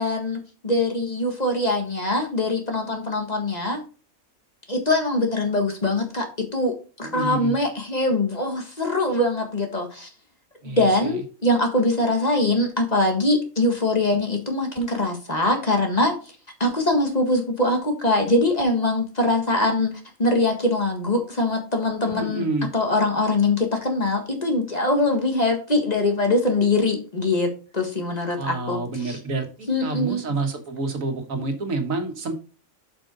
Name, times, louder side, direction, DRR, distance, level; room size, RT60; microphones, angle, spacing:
voice 1, 0.0-3.8 4.7-10.1 10.6-16.1 16.6-19.9 20.2-22.5 22.7-29.2 29.7-30.2, left 2 dB, 30° left, 3 dB, 1.6 m, -23 dB
voice 2, 7.0-7.6 10.6-11.2 22.0-22.7 28.4-32.3, right 3 dB, 80° right, 5 dB, 1.8 m, -28 dB
7.4 x 5.9 x 3.9 m, 0.35 s
omnidirectional pair, 1.4 m